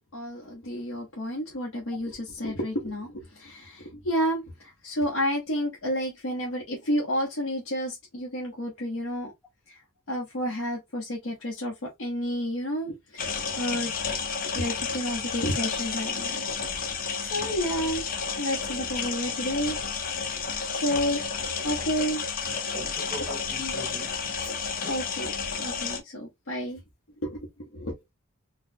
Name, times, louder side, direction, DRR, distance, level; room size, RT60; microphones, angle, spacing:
voice 1, 0.1-9.3 9.7-9.8 10.1-13.9 14.5-16.4 17.2-18.0 18.4-19.8 20.7-22.2 23.6-23.7 24.9-25.3 25.6-26.8 27.2-27.4 27.7-27.9, equal, 70° left, 0.9 m, -30 dB
sound 1, 13.2-26.0, left 5 dB, 40° left, 0.6 m, -31 dB
voice 2, 22.7-24.1 24.4-24.5 24.8-25.0, equal, 10° right, 1.1 m, -41 dB
4.1 x 2.2 x 2.6 m
head